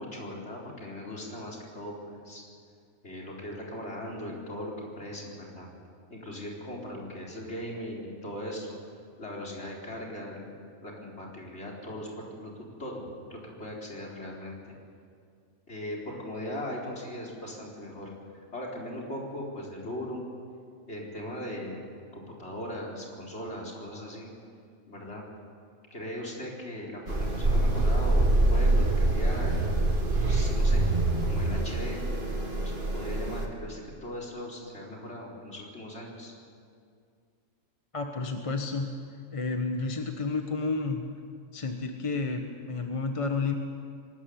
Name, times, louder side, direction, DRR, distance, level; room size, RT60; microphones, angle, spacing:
voice 1, 0.0-2.4 3.0-5.7 6.1-8.8 9.2-13.0 13.3-14.7 15.7-20.2 20.9-21.8 22.1-24.3 24.9-25.2 25.9-30.8 31.2-32.0 32.6-36.3, left 1 dB, 50° left, -2 dB, 4.4 m, -39 dB
sound 1, 27.1-33.5, right 2 dB, 40° right, 2.2 m, -25 dB
voice 2, 37.9-38.9 39.3-41.0 41.5-43.5, left 4 dB, 25° left, 4 dB, 1.1 m, -31 dB
23.0 x 13.5 x 9.4 m, 2.2 s
omnidirectional pair, 1.5 m